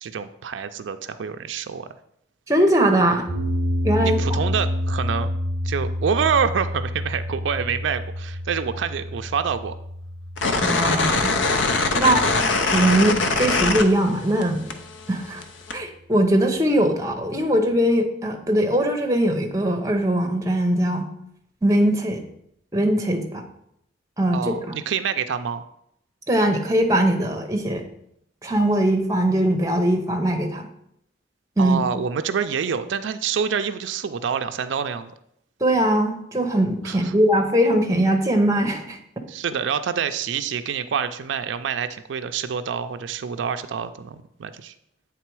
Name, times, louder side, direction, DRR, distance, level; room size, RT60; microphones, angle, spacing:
voice 1, 0.0-1.9 4.0-5.3 5.6-9.8 11.9-12.3 24.3-25.6 31.6-35.1 36.8-37.2 39.3-44.7, right 7 dB, 85° right, 9 dB, 0.4 m, -27 dB
voice 2, 2.5-3.2 3.8-4.4 10.6-11.4 11.9-12.2 12.7-14.7 15.1-15.4 15.7-21.0 21.6-22.2 22.7-23.4 24.2-24.8 26.3-27.8 28.4-30.7 31.6-31.8 35.6-39.0, right 1 dB, 15° right, 3 dB, 0.7 m, -21 dB
sound 1, 3.3-13.5, equal, 30° left, 2.7 m, -29 dB
sound 2, 10.4-14.4 14.7-15.8, left 3 dB, 90° left, 0.6 m, -22 dB
8.3 x 3.7 x 4.6 m, 0.75 s
head